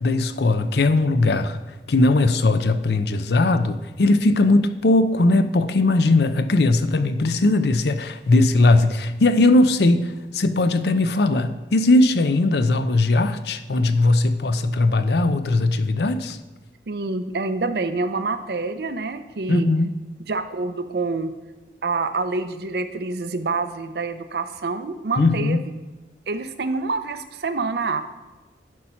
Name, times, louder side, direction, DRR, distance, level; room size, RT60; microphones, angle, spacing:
voice 1, 0.0-1.6 1.9-16.4 19.5-19.9 25.2-25.6, left 2 dB, 70° left, 10 dB, 0.6 m, -19 dB
voice 2, 16.9-19.7 20.3-21.3 21.8-25.6 26.3-28.0, right 3 dB, 60° right, 10 dB, 0.6 m, -27 dB
10.5 x 4.3 x 5.7 m, 1.2 s
head